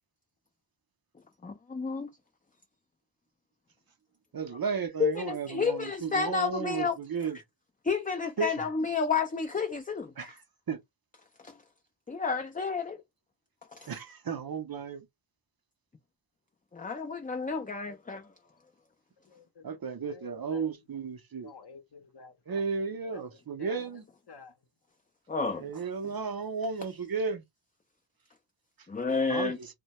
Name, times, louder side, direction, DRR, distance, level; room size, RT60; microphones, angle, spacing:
voice 1, 1.4-2.1 5.0-7.0 7.8-10.3 11.4-11.6 12.1-13.0 13.7-13.9 16.7-18.3 25.3-25.7 28.9-29.6, left 5 dB, 20° left, 0.3 m, -31 dB
voice 2, 4.3-7.4 8.4-8.5 10.2-10.3 10.7-10.8 13.9-15.1 19.6-21.5 22.5-24.0 25.6-27.4 29.3-29.7, right 5 dB, 50° right, 0.5 m, -34 dB
voice 3, 19.2-20.9 21.4-24.7, left 5 dB, 55° left, 0.7 m, -53 dB
2.1 x 2.1 x 2.8 m
wide cardioid pair, 50°, 48 cm